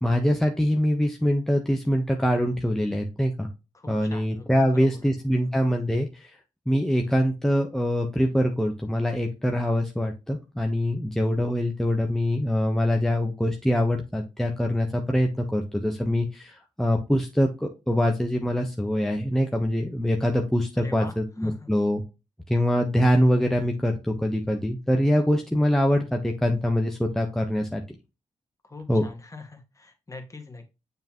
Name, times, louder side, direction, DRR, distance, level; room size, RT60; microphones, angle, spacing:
voice 1, 0.0-3.5 3.9-6.4 6.7-22.0 22.5-27.8 28.9-29.0, equal, 5° left, 2 dB, 1.1 m, -24 dB
voice 2, 3.7-5.5 20.8-21.1 21.4-21.7 28.6-30.7, left 3 dB, 25° left, 4 dB, 2.0 m, -43 dB
6.9 x 5.6 x 3.0 m, 0.27 s
cardioid pair, 65°, 11 cm